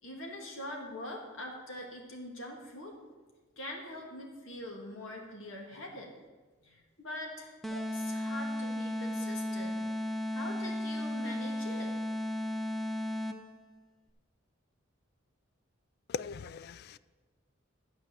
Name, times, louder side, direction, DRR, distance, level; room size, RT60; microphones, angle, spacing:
voice 1, 0.0-2.9 3.6-6.1 6.6-9.8 10.3-11.9, left 1 dB, 70° left, 0 dB, 2.0 m, -43 dB
sound 1, 7.6-13.6, left 1 dB, ahead, 0.6 m, -35 dB
voice 2, 16.1-17.0, left 6 dB, 50° left, 17 dB, 0.3 m, -39 dB
12.0 x 4.7 x 7.5 m, 1.3 s
head